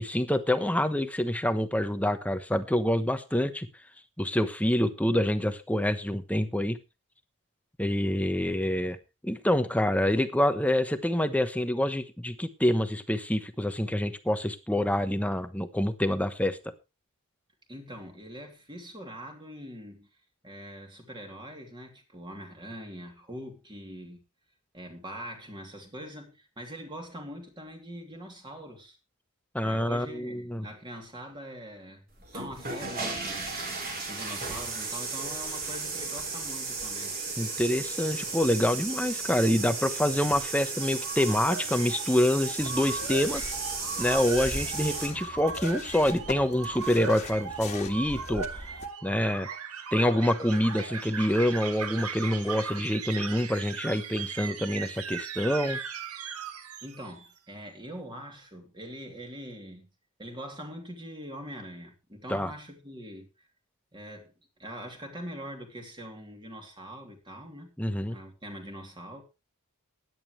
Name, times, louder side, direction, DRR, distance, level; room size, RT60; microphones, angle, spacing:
voice 1, 0.0-3.7 4.2-6.8 7.8-9.0 9.2-16.6 29.5-30.7 37.4-43.4 44.0-48.4 49.0-49.5 49.9-55.8 62.3-62.5 67.8-68.2, left 1 dB, 5° left, 1.0 m, -26 dB
voice 2, 17.7-20.1 20.4-24.2 24.7-29.0 29.6-32.0 32.3-33.5 33.7-37.2 56.8-59.9 60.2-63.3 63.9-64.3 64.6-67.7 68.1-69.2, equal, 20° right, 3.0 m, -43 dB
sound 1, 32.2-45.1, right 4 dB, 45° right, 4.2 m, -35 dB
sound 2, 40.7-57.3, right 6 dB, 75° right, 1.4 m, -38 dB
sound 3, 42.6-48.9, left 2 dB, 30° left, 1.9 m, -41 dB
16.5 x 11.0 x 3.2 m
head